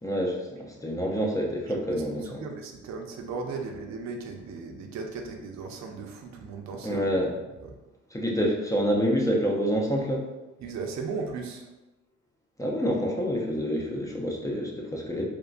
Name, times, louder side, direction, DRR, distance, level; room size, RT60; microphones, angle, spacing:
voice 1, 0.0-2.4 6.8-7.3 8.1-10.3 12.6-15.3, equal, 10° left, -1 dB, 0.4 m, -27 dB
voice 2, 2.2-7.0 7.6-7.7 10.6-11.7, right 4 dB, 65° right, 3 dB, 0.5 m, -36 dB
3.0 x 2.2 x 2.4 m, 1.1 s
cardioid pair, 90°, 30 cm